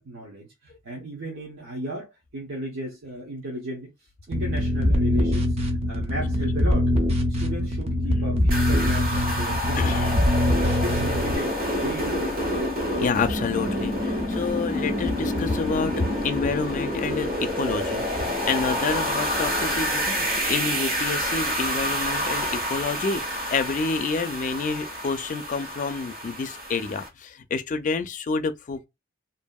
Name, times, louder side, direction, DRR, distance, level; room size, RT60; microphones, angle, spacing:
voice 1, 0.0-3.9 4.3-6.9 7.3-10.2 10.5-12.3, right 1 dB, 75° right, 0.8 m, -35 dB
sound 1, 4.3-11.4, left 1 dB, 30° right, 0.5 m, -23 dB
sound 2, 8.5-27.1, equal, 50° right, 1.2 m, -28 dB
voice 2, 9.8-10.1 13.0-28.9, left 4 dB, 40° left, 0.4 m, -28 dB
2.7 x 2.6 x 2.2 m
head